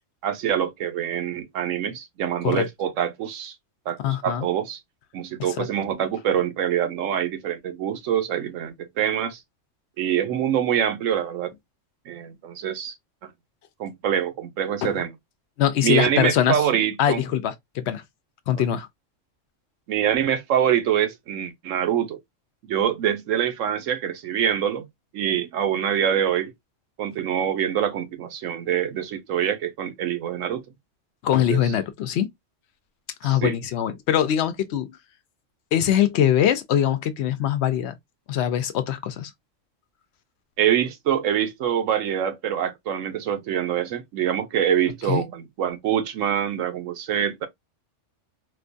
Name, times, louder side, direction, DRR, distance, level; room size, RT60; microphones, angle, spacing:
voice 1, 0.2-3.5 3.9-4.8 5.1-9.4 10.0-11.5 12.1-12.9 13.2-13.3 13.8-15.1 15.8-17.2 19.9-22.2 22.7-24.8 25.1-26.5 27.0-30.6 31.5-31.7 33.2-33.6 40.6-47.5, right 9 dB, 80° right, 1.1 m, -25 dB
voice 2, 4.0-4.5 5.6-5.7 14.8-15.0 15.6-16.6 17.0-18.0 18.5-18.9 31.2-32.3 33.2-35.0 35.7-38.0 38.3-39.3 45.1-45.3, left 10 dB, 65° left, 0.8 m, -22 dB
4.3 x 2.2 x 2.5 m
omnidirectional pair, 1.3 m